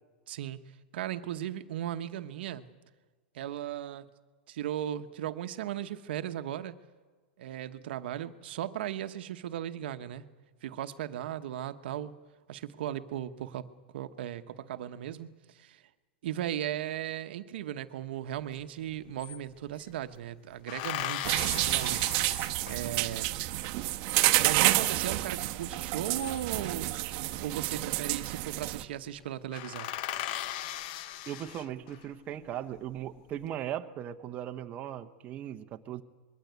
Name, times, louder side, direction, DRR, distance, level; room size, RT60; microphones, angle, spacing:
voice 1, 0.3-0.6 0.9-2.7 3.3-4.1 4.5-6.8 7.4-10.2 10.6-12.1 12.5-13.7 13.9-15.8 16.2-22.1 22.7-23.4 24.4-26.9 27.4-29.9, right 11 dB, 70° right, 10 dB, 1.0 m, -37 dB
sound 1, 18.6-18.7 18.9-19.9 20.7-23.2 25.9-26.8 28.0-28.4 28.7-28.8 29.2-29.3 29.5-32.1 32.6-33.3, left 13 dB, 50° left, 0.7 m, -38 dB
sound 2, 21.2-28.8, right 17 dB, 45° right, 1.0 m, -29 dB
voice 2, 31.3-36.0, right 11 dB, 25° right, 6 dB, 0.9 m, -38 dB
22.0 x 16.0 x 8.2 m, 1.4 s
supercardioid pair, 150°, 6 cm